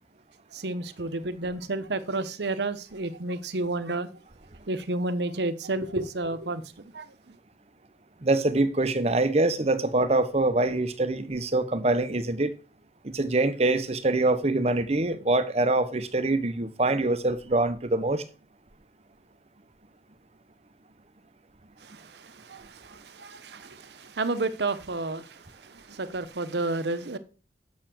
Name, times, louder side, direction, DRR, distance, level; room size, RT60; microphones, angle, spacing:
voice 1, 0.5-4.1 4.7-6.6 6.9-7.1 21.8-25.4 25.7-27.2, right 2 dB, 70° right, 0.9 m, -31 dB
voice 2, 8.2-12.5 13.0-18.2, right 2 dB, 35° right, 0.8 m, -24 dB
7.2 x 6.9 x 7.6 m
head